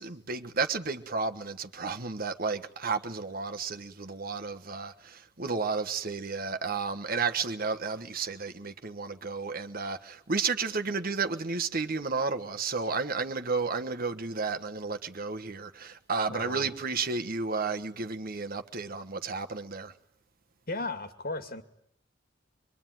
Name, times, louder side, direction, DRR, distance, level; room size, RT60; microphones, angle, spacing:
voice 1, 0.0-19.9, right 4 dB, 50° right, 1.4 m, -32 dB
voice 2, 16.3-16.7 20.7-21.6, left 2 dB, 50° left, 2.4 m, -35 dB
25.0 x 23.5 x 9.3 m
head